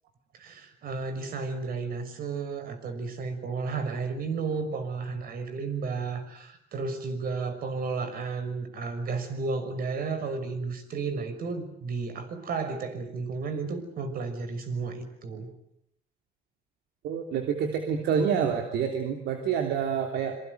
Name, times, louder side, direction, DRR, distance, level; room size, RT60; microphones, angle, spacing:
voice 1, 0.3-15.5, right 4 dB, 60° right, 9 dB, 6.0 m, -33 dB
voice 2, 17.0-20.4, right 7 dB, 75° right, 4 dB, 3.1 m, -27 dB
26.5 x 23.5 x 8.0 m, 0.74 s
cardioid pair, 110°, 17 cm